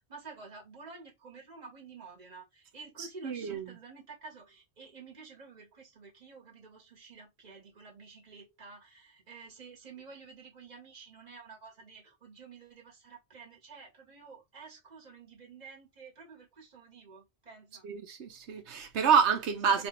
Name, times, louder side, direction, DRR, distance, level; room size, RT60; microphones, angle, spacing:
voice 1, 0.1-17.9 19.6-19.9, right 4 dB, 40° right, 1.5 m, -50 dB
voice 2, 3.0-3.7 17.8-19.9, right 7 dB, 85° right, 1.1 m, -28 dB
4.2 x 2.5 x 3.0 m
omnidirectional pair, 1.1 m